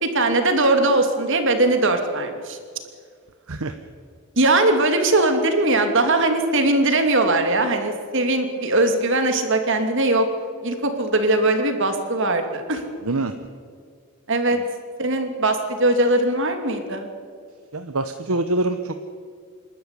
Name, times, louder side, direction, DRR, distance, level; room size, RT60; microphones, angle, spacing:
voice 1, 0.0-2.6 4.4-10.3 10.6-12.8 14.3-14.6 15.0-17.1, right 2 dB, 55° right, 6 dB, 2.7 m, -20 dB
voice 2, 17.7-19.0, right 2 dB, 75° right, 8 dB, 1.1 m, -25 dB
28.0 x 12.5 x 9.8 m, 2.1 s
head